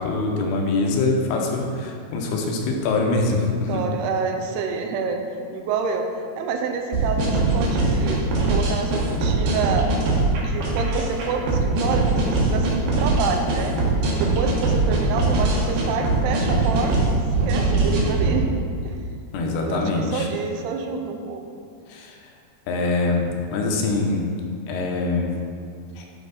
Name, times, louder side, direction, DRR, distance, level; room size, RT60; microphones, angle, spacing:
voice 1, 0.0-3.8 19.3-20.3 21.9-22.2 22.7-24.2 24.7-25.3 26.0-26.1, left 3 dB, 85° left, 1 dB, 2.8 m, -24 dB
voice 2, 3.7-5.2 5.5-6.1 6.4-9.9 10.4-13.7 14.1-18.9 19.7-21.4, right 5 dB, 85° right, 4 dB, 2.8 m, -28 dB
sound 1, 6.9-18.3, right 2 dB, 70° right, 2.8 m, -21 dB
11.0 x 4.4 x 4.0 m, 2.2 s
omnidirectional pair, 4.7 m